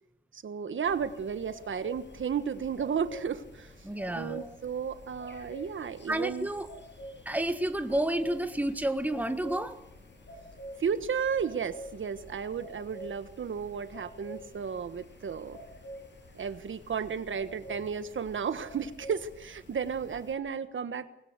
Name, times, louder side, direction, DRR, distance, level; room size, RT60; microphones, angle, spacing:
voice 1, 0.3-3.7 4.1-6.5 10.8-15.6 16.3-21.1, right 7 dB, 90° right, 12 dB, 1.3 m, -33 dB
sound 1, 0.8-20.3, equal, 65° left, 7.2 m, -48 dB
voice 2, 3.8-4.4 6.1-6.7 7.2-9.8, right 1 dB, 10° right, 8 dB, 1.5 m, -30 dB
24.0 x 20.5 x 8.1 m, 0.81 s
wide cardioid pair, 170°, 19 cm